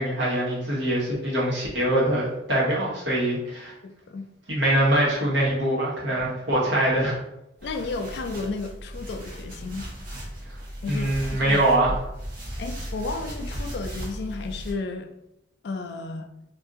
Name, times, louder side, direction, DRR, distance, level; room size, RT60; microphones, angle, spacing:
voice 1, 0.0-3.7 4.5-7.1 10.8-11.9, right 1 dB, 65° right, -7 dB, 1.2 m, -23 dB
voice 2, 3.8-4.2 7.6-9.8 10.8-11.6 12.6-15.1 15.6-16.3, left 3 dB, 55° left, 6 dB, 0.3 m, -33 dB
sound 1, 7.6-14.7, equal, 45° right, 0.8 m, -36 dB
2.6 x 2.5 x 3.6 m, 0.85 s
head